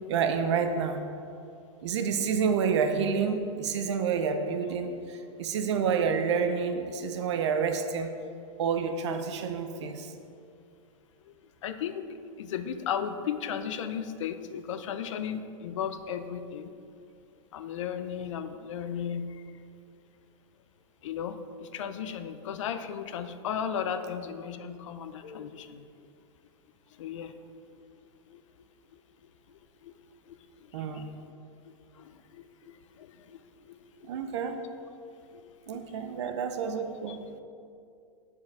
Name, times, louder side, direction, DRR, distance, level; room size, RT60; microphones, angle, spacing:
voice 1, 0.1-1.0 1.8-8.1 8.6-10.1 30.7-31.1 34.1-34.6 35.7-37.2, right 6 dB, 65° right, 7 dB, 0.6 m, -29 dB
voice 2, 11.6-12.0 12.4-16.7 17.5-19.4 21.0-25.8 27.0-27.3 28.3-28.4 29.8-29.9 30.3-30.4 30.9-31.0 32.0-33.4 33.6-34.1 35.7-36.2 37.1-37.2, left 8 dB, 80° left, 10 dB, 0.6 m, -35 dB
7.5 x 4.5 x 5.9 m, 2.5 s
supercardioid pair, 180°, 16 cm